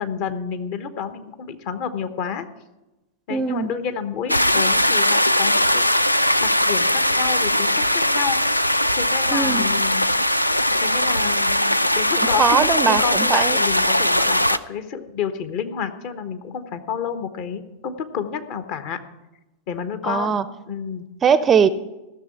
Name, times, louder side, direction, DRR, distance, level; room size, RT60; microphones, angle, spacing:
voice 1, 0.0-2.4 3.3-5.8 6.4-10.1 10.7-19.0 19.7-20.3 20.7-21.1, left 7 dB, 45° left, 9 dB, 1.1 m, -30 dB
voice 2, 3.3-3.7 9.3-9.7 12.4-13.6 20.0-20.4 21.2-21.7, right 6 dB, 25° right, 15 dB, 0.6 m, -20 dB
sound 1, 4.3-14.6, left 1 dB, 85° left, 0.4 m, -20 dB
14.5 x 6.8 x 8.5 m, 1.0 s
figure-of-eight pair, 90°, 0 cm